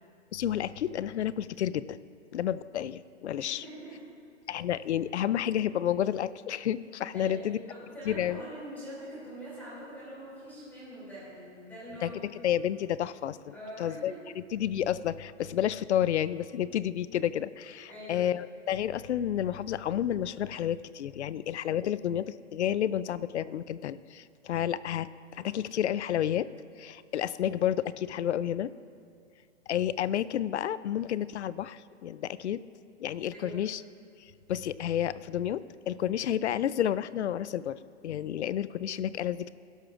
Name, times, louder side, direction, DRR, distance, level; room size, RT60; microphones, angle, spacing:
voice 1, 0.3-2.0 2.3-3.6 4.5-7.6 8.1-8.4 12.0-12.1 12.4-14.1 14.5-26.5 26.8-28.7 29.7-32.6 33.0-33.8 34.2-39.5, left 10 dB, 70° left, 17 dB, 0.5 m, -30 dB
voice 2, 3.4-4.0 7.1-7.4 7.7-12.5 13.5-14.2 17.9-18.3 33.3-33.7, equal, 5° left, -9 dB, 2.9 m, -44 dB
17.5 x 12.0 x 2.5 m, 2.4 s
hypercardioid pair, 175°, 36 cm